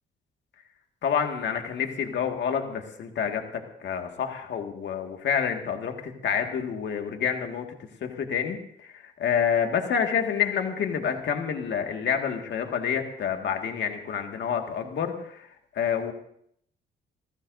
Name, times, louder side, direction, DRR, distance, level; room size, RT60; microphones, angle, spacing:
voice 1, 1.0-7.7 8.0-15.5 15.7-16.1, left 7 dB, 65° left, 4 dB, 1.9 m, -28 dB
27.5 x 15.5 x 2.7 m, 0.68 s
cardioid pair, 90°, 20 cm